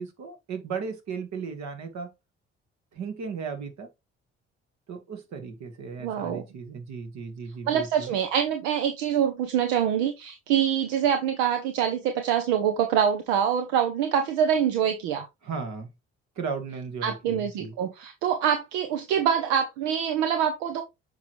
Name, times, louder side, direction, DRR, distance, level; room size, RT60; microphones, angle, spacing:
voice 1, 0.0-2.1 2.9-3.9 4.9-8.1 15.4-15.9 16.4-17.8, right 5 dB, 65° right, 1.8 m, -35 dB
voice 2, 6.0-6.4 7.7-15.3 17.0-20.8, right 8 dB, 85° right, 0.8 m, -25 dB
6.9 x 4.8 x 3.1 m
hypercardioid pair, 55°, 30 cm